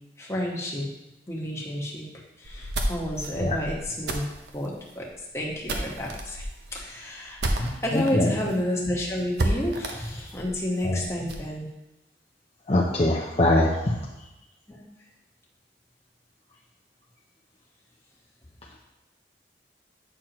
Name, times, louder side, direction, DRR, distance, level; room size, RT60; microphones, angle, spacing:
voice 1, 0.2-0.9 1.3-2.1 2.4-4.2 4.5-5.1 5.3-6.5 6.7-11.7 14.7-14.8, left 1 dB, 15° left, -3 dB, 1.3 m, -30 dB
sound 1, 2.4-8.1 8.5-8.6 8.8-8.9 9.4-11.5, right 1 dB, 80° right, 0.9 m, -31 dB
voice 2, 7.6-8.3 10.8-11.0 12.7-14.0, left 1 dB, 35° left, -3 dB, 0.6 m, -23 dB
8.8 x 6.3 x 3.0 m, 0.94 s
head